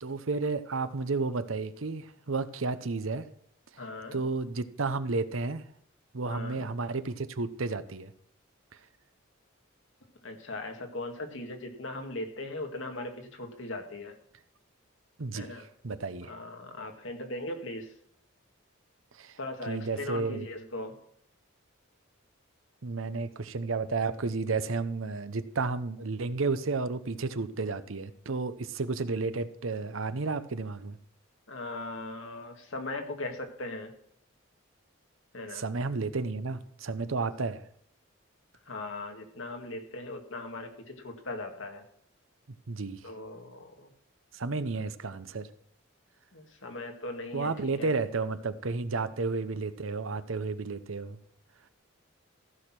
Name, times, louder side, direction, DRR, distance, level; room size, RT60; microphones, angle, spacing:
voice 1, 0.0-3.3 4.1-5.6 6.1-8.1 15.2-16.3 19.1-19.4 19.7-20.5 22.8-31.0 35.5-37.6 42.7-43.0 44.3-45.5 47.3-51.2, right 3 dB, 75° right, 13 dB, 0.8 m, -32 dB
voice 2, 3.8-4.2 6.3-6.7 10.2-14.1 15.3-15.6 16.2-17.9 19.4-20.9 31.5-33.9 35.3-35.6 38.7-41.8 43.0-43.9 46.3-47.5 47.8-47.9, left 2 dB, 65° left, 4 dB, 2.1 m, -39 dB
15.0 x 6.4 x 6.0 m, 0.65 s
head